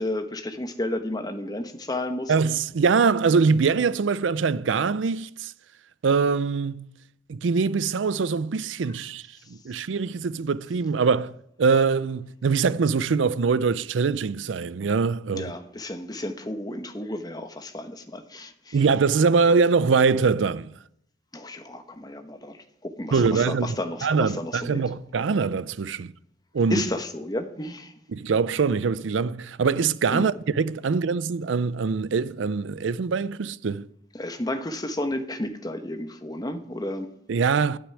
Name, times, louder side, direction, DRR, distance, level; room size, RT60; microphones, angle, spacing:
voice 1, 0.0-2.3 15.3-18.8 21.3-24.8 26.7-27.9 30.1-30.3 34.1-37.1, left 1 dB, 20° left, 1.0 m, -32 dB
voice 2, 2.3-5.5 6.0-6.9 7.3-9.2 9.6-15.5 18.7-20.7 23.1-23.7 24.0-26.1 26.5-26.8 28.1-33.9 37.3-37.8, right 5 dB, 90° right, 0.5 m, -23 dB
13.0 x 6.2 x 9.6 m
head